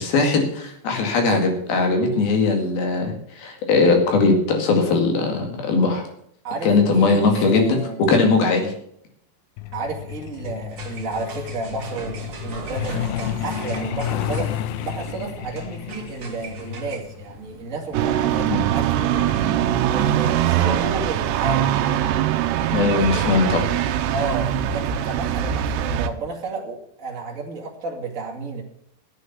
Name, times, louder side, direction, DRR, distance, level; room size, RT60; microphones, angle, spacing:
voice 1, 0.0-6.0 6.6-7.8 8.1-8.7 18.5-18.6 22.7-23.6, left 3 dB, 60° left, 4 dB, 3.8 m, -19 dB
voice 2, 6.4-8.0 9.7-19.5 19.9-21.8 22.9-23.3 24.1-28.6, right 3 dB, 25° right, -1 dB, 1.8 m, -31 dB
Truck, 9.6-21.9 23.1-23.3 23.7-23.8 24.2-24.5 24.8-24.9 25.4-25.5, left 12 dB, 90° left, 2.0 m, -32 dB
sound 1, 10.7-20.3, right 4 dB, 45° right, 2.0 m, -39 dB
sound 2, 17.9-26.1, right 11 dB, 85° right, 2.9 m, -22 dB
12.0 x 8.3 x 8.2 m, 0.68 s
omnidirectional pair, 5.0 m